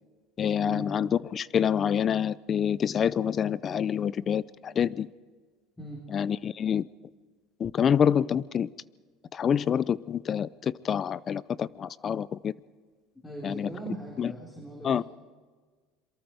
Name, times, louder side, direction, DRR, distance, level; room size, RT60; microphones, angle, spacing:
voice 1, 0.4-5.1 6.1-6.9 7.6-8.7 9.3-12.5 13.4-13.7 14.2-14.3 14.8-15.0, left 8 dB, 35° left, 0.6 m, -27 dB
voice 2, 13.2-15.0, right 1 dB, 10° left, 4.1 m, -39 dB
27.0 x 23.5 x 4.8 m
supercardioid pair, 120°, 0 cm